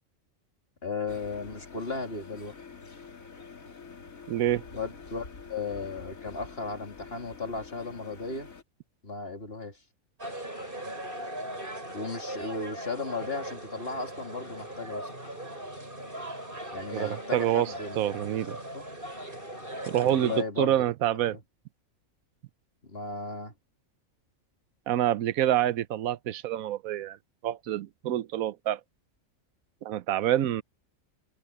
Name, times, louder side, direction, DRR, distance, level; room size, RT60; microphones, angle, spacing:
voice 1, 0.8-2.5 4.7-8.5 9.0-9.8 11.9-15.1 16.7-18.3 18.7-18.9 20.0-20.9 21.3-21.4 22.8-23.5, left 4 dB, 45° left, 3.4 m, -36 dB
sound 1, 1.1-8.6, left 5 dB, 80° left, 2.7 m, -47 dB
voice 2, 4.3-4.6 16.9-18.6 19.9-21.4 24.9-27.2 27.4-28.8 29.8-30.6, right 12 dB, 90° right, 1.1 m, -27 dB
sound 2, 10.2-20.4, right 1 dB, 40° right, 8.3 m, -39 dB
omnidirectional pair, 1.4 m